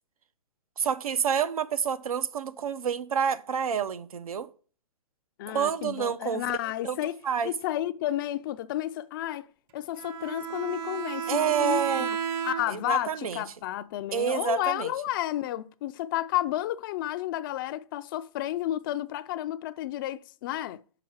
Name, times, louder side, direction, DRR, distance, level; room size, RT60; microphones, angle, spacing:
voice 1, 0.8-4.5 5.5-6.6 6.8-7.0 7.2-7.5 11.3-12.1 12.7-13.4 14.1-14.9, right 7 dB, 80° right, 0.7 m, -28 dB
voice 2, 5.4-7.2 7.4-9.5 9.7-12.2 12.4-20.8, left 14 dB, 40° left, 0.4 m, -31 dB
Bowed string instrument, 10.0-13.0, right 7 dB, 35° right, 0.7 m, -33 dB
5.9 x 4.7 x 6.3 m
hypercardioid pair, 135°, 18 cm